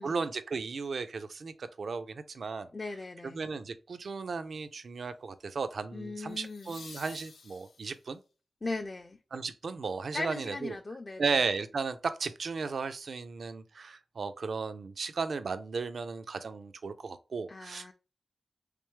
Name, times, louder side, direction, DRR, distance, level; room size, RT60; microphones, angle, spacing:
voice 1, 0.0-2.7 3.3-8.2 9.3-10.8 11.2-17.9, right 4 dB, 65° right, 0.4 m, -35 dB
voice 2, 2.7-3.5 5.9-6.7 8.6-9.2 10.1-11.4 17.5-17.9, left 3 dB, 30° left, 0.4 m, -38 dB
sound 1, 3.3-3.6 6.3-8.2 11.1-11.2, left 4 dB, 90° left, 0.6 m, -51 dB
3.5 x 3.3 x 3.1 m
wide cardioid pair, 130°, 0 cm